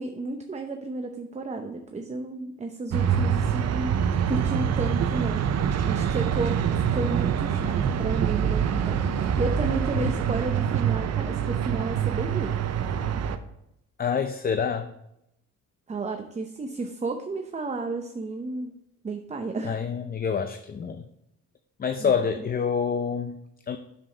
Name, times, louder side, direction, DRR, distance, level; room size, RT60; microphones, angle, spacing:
voice 1, 0.0-3.9 4.3-5.4 5.8-12.5 15.9-18.7 19.0-19.8 22.0-22.5, right 3 dB, 25° right, 5 dB, 0.7 m, -32 dB
sound 1, 2.9-13.4, right 8 dB, 60° right, 0.7 m, -25 dB
voice 2, 14.0-14.9 19.6-21.0 21.8-23.4 23.7-23.8, left 6 dB, 30° left, 9 dB, 0.5 m, -27 dB
7.3 x 7.1 x 4.0 m, 0.82 s
cardioid pair, 90°, 30 cm